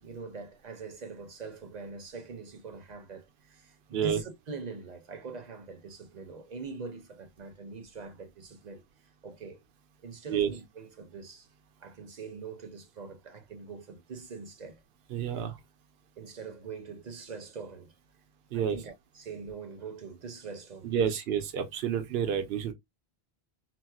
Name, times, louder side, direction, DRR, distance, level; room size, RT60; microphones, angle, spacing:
voice 1, 0.0-8.8 9.2-9.6 10.0-11.5 11.8-14.8 15.3-15.4 16.2-17.9 18.5-21.2, right 4 dB, 50° right, 0.7 m, -43 dB
voice 2, 15.1-15.6 18.5-18.8 20.8-22.7, right 8 dB, 80° right, 0.9 m, -29 dB
4.2 x 2.0 x 2.3 m
omnidirectional pair, 1.0 m